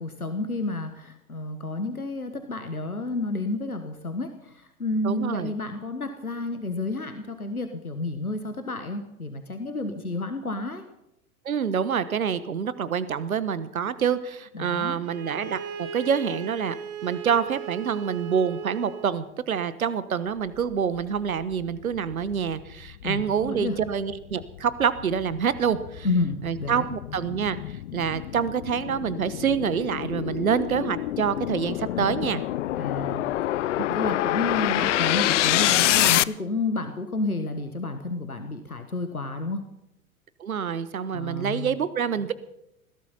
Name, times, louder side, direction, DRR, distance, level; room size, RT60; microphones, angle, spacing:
voice 1, 0.0-10.8 14.5-15.0 23.0-23.8 26.0-26.9 32.7-33.3 33.9-39.6 41.1-41.8, left 2 dB, 85° left, 8 dB, 1.5 m, -30 dB
voice 2, 5.0-5.5 11.4-16.7 17.0-26.1 26.4-32.4 33.8-33.9 40.4-42.3, right 7 dB, 75° right, 15 dB, 1.3 m, -27 dB
Bowed string instrument, 15.0-19.2, right 8 dB, 35° right, 2.2 m, -37 dB
sound 1, 21.5-21.6 22.1-36.2, left 14 dB, 55° left, 0.7 m, -27 dB
21.0 x 16.5 x 4.2 m, 0.84 s
figure-of-eight pair, 85°, 43 cm